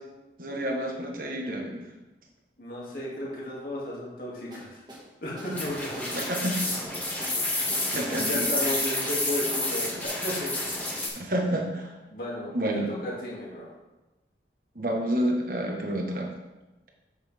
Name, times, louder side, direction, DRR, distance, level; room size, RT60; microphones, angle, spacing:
voice 1, 0.4-1.8 6.1-6.7 7.9-8.5 11.2-11.9 12.5-12.9 14.7-16.3, right 1 dB, 50° right, 0 dB, 1.5 m, -29 dB
voice 2, 2.6-4.8 5.2-6.1 7.6-10.5 12.1-12.5 12.9-13.7, equal, 55° left, -6 dB, 2.7 m, -34 dB
sound 1, 4.5-5.0 5.4-6.3 7.2-7.4 7.7-8.3 8.6-9.2 9.5-9.7 10.0-10.1, equal, 25° right, 1.5 m, -43 dB
sound 2, 5.5-11.1, left 2 dB, 10° left, 1.5 m, -29 dB
8.2 x 8.0 x 3.6 m, 1.0 s
head